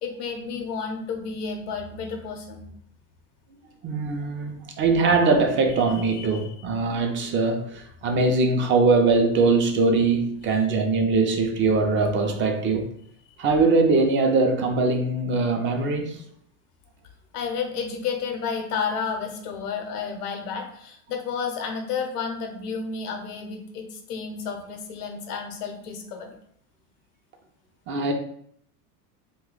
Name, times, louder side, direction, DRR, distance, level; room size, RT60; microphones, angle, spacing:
voice 1, 0.0-2.7 5.9-6.5 10.5-10.6 13.3-13.4 17.3-26.3, left 5 dB, 80° left, 0.8 m, -31 dB
voice 2, 3.8-12.9 13.4-16.2 27.9-28.1, right 3 dB, 25° right, 0.4 m, -22 dB
2.7 x 2.2 x 3.8 m
supercardioid pair, 105°, 45 cm